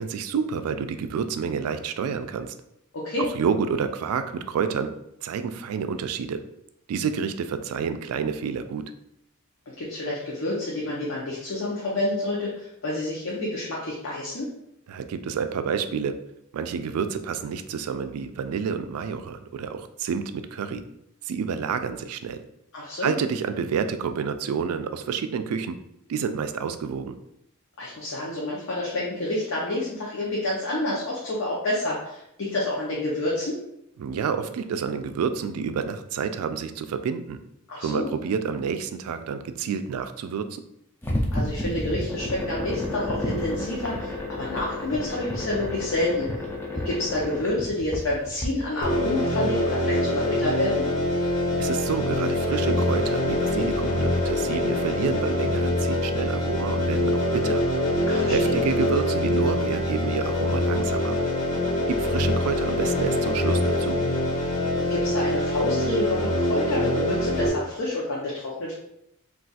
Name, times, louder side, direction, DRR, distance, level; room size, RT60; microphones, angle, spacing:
voice 1, 0.0-2.5 3.2-4.9 5.2-6.4 6.9-8.8 14.9-16.2 16.5-20.8 21.2-22.4 23.0-25.8 26.1-27.2 34.0-37.4 37.8-40.6 51.6-57.6 58.2-61.2 61.9-64.0, right 6 dB, 90° right, 9 dB, 0.3 m, -29 dB
voice 2, 2.9-3.3 9.7-14.5 22.7-23.2 27.8-33.6 37.7-38.1 41.3-46.3 46.8-50.8 58.1-58.6 64.8-68.7, left 1 dB, 65° left, -6 dB, 0.6 m, -28 dB
sound 1, 41.0-48.5, left 1 dB, 10° left, 0.4 m, -30 dB
sound 2, 48.8-67.5, left 1 dB, 35° left, 0.8 m, -24 dB
2.4 x 2.3 x 3.9 m, 0.79 s
head